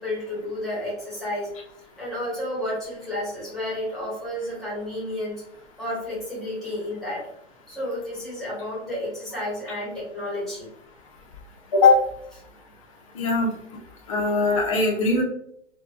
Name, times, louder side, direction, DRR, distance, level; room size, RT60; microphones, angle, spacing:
voice 1, 0.0-1.5 2.0-5.4 5.8-7.3 7.7-10.7, left 1 dB, ahead, -9 dB, 0.8 m, -31 dB
voice 2, 13.2-13.5 14.1-15.2, left 3 dB, 30° left, 0 dB, 0.5 m, -19 dB
3.9 x 2.1 x 2.3 m, 0.72 s
hypercardioid pair, 155°, 36 cm